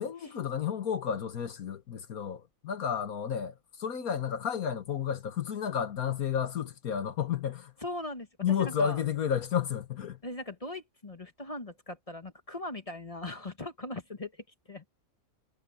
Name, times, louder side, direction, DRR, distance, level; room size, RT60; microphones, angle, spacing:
voice 1, 0.0-7.7 8.4-10.2, left 8 dB, 80° left, 1.7 m, -32 dB
voice 2, 7.8-9.0 10.2-14.3 14.7-14.8, left 1 dB, 25° left, 1.2 m, -39 dB
omnidirectional pair, 1.5 m